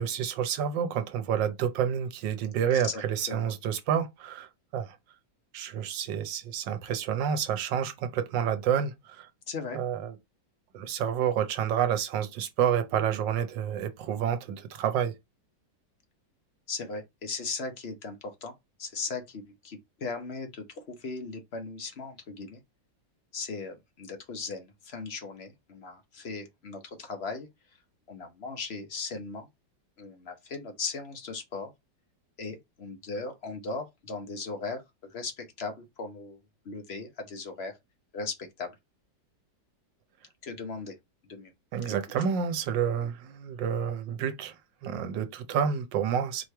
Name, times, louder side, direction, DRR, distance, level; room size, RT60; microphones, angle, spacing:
voice 1, 0.0-5.0 5.5-9.3 9.7-10.1 10.7-15.1 41.7-44.5 44.8-46.5, right 8 dB, 75° right, 1.4 m, -29 dB
voice 2, 2.5-3.5 9.5-9.8 16.7-18.5 18.8-22.6 23.3-27.5 28.1-29.5 30.0-31.7 32.4-36.4 36.6-37.8 38.1-38.7 40.4-40.9 41.2-41.5 41.8-42.0 43.0-43.1, left 4 dB, 45° left, 0.9 m, -38 dB
4.6 x 3.1 x 3.3 m
omnidirectional pair, 2.0 m